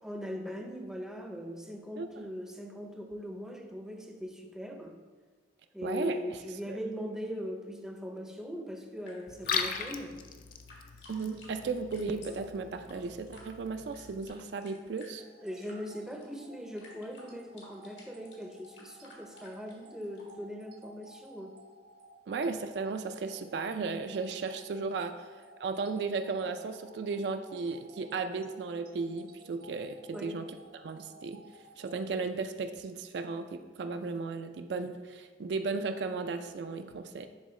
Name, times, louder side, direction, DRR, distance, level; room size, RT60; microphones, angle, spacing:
voice 1, 0.0-5.0 5.7-10.2 15.4-21.5 30.1-30.4, equal, 5° right, 3 dB, 0.5 m, -40 dB
voice 2, 5.8-6.2 6.7-6.8 11.1-15.2 22.3-25.3 25.6-30.5 30.8-31.4 31.8-37.3, right 4 dB, 70° right, 7 dB, 0.4 m, -35 dB
sound 1, 8.7-20.3, left 2 dB, 80° left, 1.7 m, -56 dB
Liquid, 9.3-14.3, left 6 dB, 50° left, 0.4 m, -39 dB
sound 2, 15.2-32.2, right 2 dB, 55° right, 0.8 m, -56 dB
10.5 x 3.7 x 3.1 m, 1.5 s
head